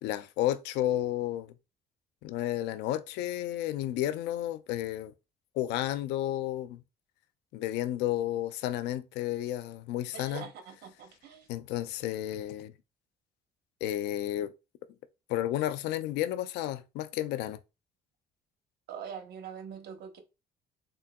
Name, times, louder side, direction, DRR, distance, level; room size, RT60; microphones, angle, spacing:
voice 1, 0.0-1.5 2.2-5.1 5.6-6.8 7.5-10.4 11.5-12.7 13.8-14.5 15.3-17.6, left 13 dB, 85° left, 0.4 m, -32 dB
voice 2, 10.1-11.5 18.9-20.2, right 7 dB, 70° right, 1.0 m, -43 dB
3.6 x 3.4 x 2.3 m
cardioid pair, 110°, 17 cm